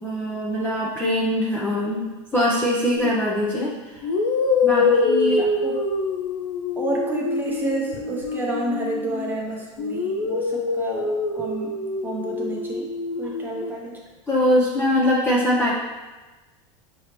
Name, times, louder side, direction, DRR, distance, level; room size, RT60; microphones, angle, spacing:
voice 1, 0.0-4.0 4.6-5.4 14.3-15.7, left 1 dB, 10° left, -6 dB, 0.7 m, -22 dB
sound 1, 3.0-3.2 4.0-9.4 9.8-13.7, left 3 dB, 80° left, 0.6 m, -25 dB
voice 2, 5.2-5.8 6.8-11.8 12.0-12.9 13.2-14.0, right 2 dB, 10° right, -3 dB, 0.9 m, -30 dB
4.7 x 2.9 x 3.1 m, 1.2 s
hypercardioid pair, 110°, 17 cm